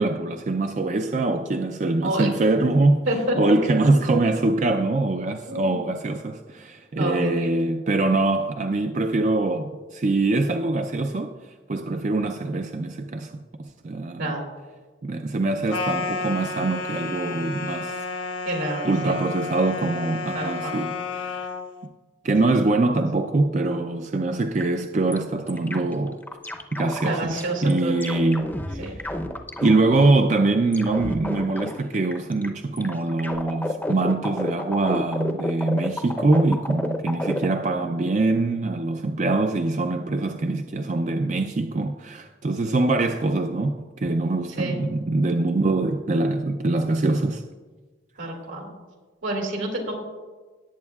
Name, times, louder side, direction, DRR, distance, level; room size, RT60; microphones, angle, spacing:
voice 1, 0.0-3.1 3.4-11.3 11.7-13.3 13.6-14.4 15.0-18.0 18.8-21.5 22.2-26.2 26.7-29.0 29.6-47.4 48.2-48.3, right 2 dB, 40° right, 0.4 m, -23 dB
voice 2, 3.1-3.5 5.5-5.8 7.0-7.5 14.2-14.4 18.4-19.1 20.3-20.8 22.5-22.6 22.8-22.9 27.0-28.3 28.8-28.9 42.6-42.7 44.6-44.8 48.2-48.7 49.2-49.9, right 1 dB, 80° right, 2.6 m, -28 dB
sound 1, 15.7-21.7, left 4 dB, 85° left, 1.3 m, -31 dB
sound 2, 24.6-24.7 25.1-25.2 25.5-27.4 27.7-30.4 30.7-32.5 32.8-37.4, left 1 dB, 10° left, 0.6 m, -30 dB
17.5 x 8.7 x 2.3 m
head